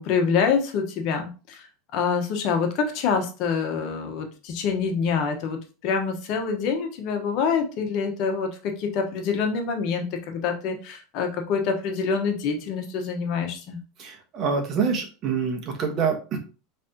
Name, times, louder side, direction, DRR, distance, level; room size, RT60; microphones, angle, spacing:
voice 1, 0.0-1.7 1.9-13.8, left 5 dB, 55° left, 4 dB, 1.2 m, -26 dB
voice 2, 14.0-16.4, right 5 dB, 45° right, 3 dB, 1.3 m, -26 dB
4.9 x 3.4 x 2.9 m, 0.33 s
supercardioid pair, 105°, 0 cm